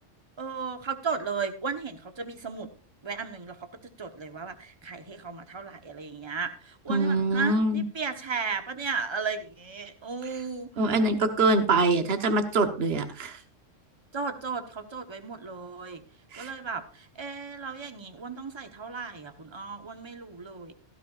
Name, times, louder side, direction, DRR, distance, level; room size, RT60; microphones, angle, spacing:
voice 1, 0.4-2.7 3.0-3.6 4.0-10.7 14.1-16.0 16.3-20.7, right 5 dB, 20° right, 7 dB, 1.1 m, -35 dB
voice 2, 6.9-7.8 10.8-13.4 16.3-16.5, right 2 dB, 55° right, 7 dB, 1.4 m, -24 dB
16.5 x 12.5 x 2.5 m, 0.35 s
omnidirectional pair, 1.3 m